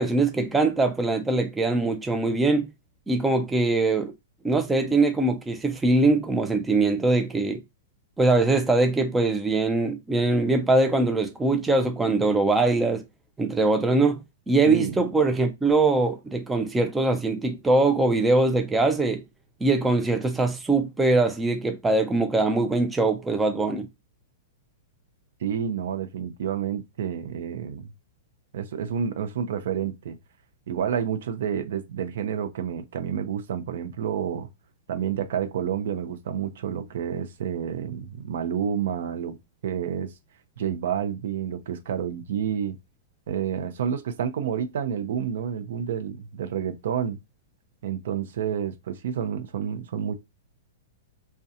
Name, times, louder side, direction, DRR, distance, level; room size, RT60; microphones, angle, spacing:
voice 1, 0.0-2.7 3.1-4.1 4.4-7.6 8.2-13.0 13.4-14.2 14.5-19.2 19.6-23.9, right 2 dB, 5° right, 0.3 m, -22 dB
voice 2, 14.6-15.0 25.4-27.9 28.5-30.2 30.7-34.5 34.9-39.4 39.6-40.1 40.6-42.8 43.3-47.2 47.8-50.1, right 8 dB, 70° right, 0.5 m, -29 dB
2.4 x 2.1 x 2.7 m
hypercardioid pair, 155°, 0 cm